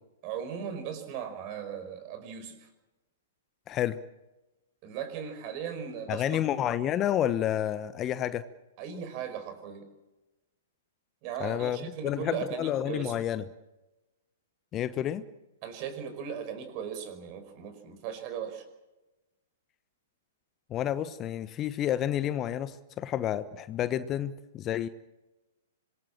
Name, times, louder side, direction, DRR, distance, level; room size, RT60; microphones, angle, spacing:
voice 1, 0.2-2.7 4.8-6.4 8.8-9.9 11.2-13.2 15.6-18.6, right 7 dB, 40° right, 9 dB, 5.4 m, -37 dB
voice 2, 3.7-4.0 6.1-8.5 11.4-11.8 12.0-13.4 14.7-15.3 20.7-24.9, left 11 dB, 25° left, 14 dB, 1.0 m, -30 dB
26.0 x 22.0 x 7.5 m, 1.1 s
figure-of-eight pair, 110°, 0 cm